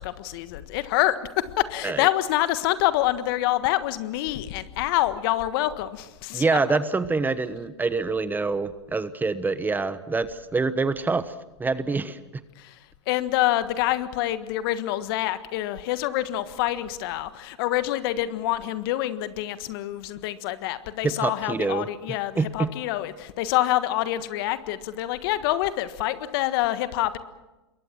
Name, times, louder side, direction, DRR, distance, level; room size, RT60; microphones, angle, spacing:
voice 1, 0.0-6.4 12.6-12.7 13.1-27.2, left 14 dB, 55° left, 12 dB, 1.5 m, -26 dB
voice 2, 6.3-11.3 11.6-12.2 21.0-22.7, right 4 dB, 15° right, 13 dB, 1.1 m, -26 dB
27.5 x 22.5 x 6.2 m, 1.1 s
hypercardioid pair, 100°, 14 cm